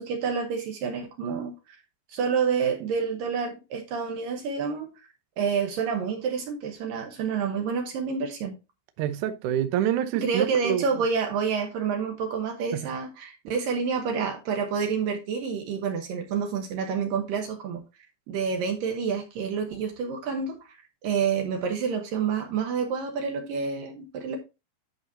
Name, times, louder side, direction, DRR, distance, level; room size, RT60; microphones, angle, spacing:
voice 1, 0.0-1.5 2.1-4.9 5.4-8.5 10.1-17.8 18.3-20.8 21.0-24.4, right 6 dB, 70° right, 2.3 m, -28 dB
voice 2, 9.0-10.9 12.7-12.9, right 11 dB, 90° right, 1.7 m, -27 dB
11.0 x 5.9 x 2.7 m
omnidirectional pair, 4.9 m